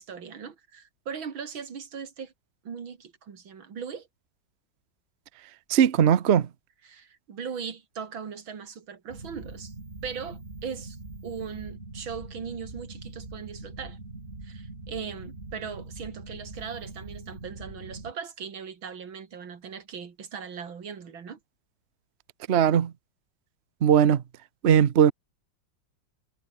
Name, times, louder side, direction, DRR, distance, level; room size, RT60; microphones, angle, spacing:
voice 1, 0.0-2.3 2.6-4.1 6.8-9.7 10.0-11.0 11.2-14.0 14.4-21.4, right 6 dB, 85° right, 3.0 m, -39 dB
voice 2, 5.7-6.5 22.5-22.9 23.8-24.2 24.6-25.1, right 9 dB, 50° right, 0.8 m, -19 dB
sound 1, 9.1-18.1, right 2 dB, 30° right, 4.0 m, -42 dB
omnidirectional pair, 2.1 m